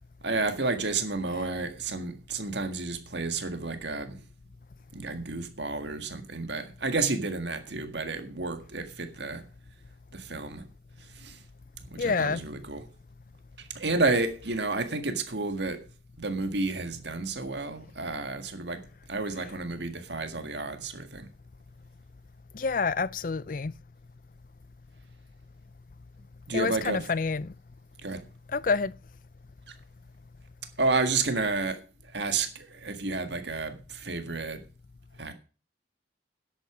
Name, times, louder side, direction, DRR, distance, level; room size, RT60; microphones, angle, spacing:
voice 1, 0.2-4.3 4.9-9.5 10.1-10.7 11.0-11.4 11.8-12.9 13.6-15.9 16.2-21.3 26.5-27.1 28.0-28.2 29.7-29.8 30.8-34.6 35.2-35.3, right 3 dB, 70° right, 1.8 m, -31 dB
voice 2, 12.0-12.4 22.5-23.7 26.5-27.5 28.5-28.9, left 4 dB, 45° left, 0.5 m, -28 dB
10.5 x 8.4 x 6.0 m
head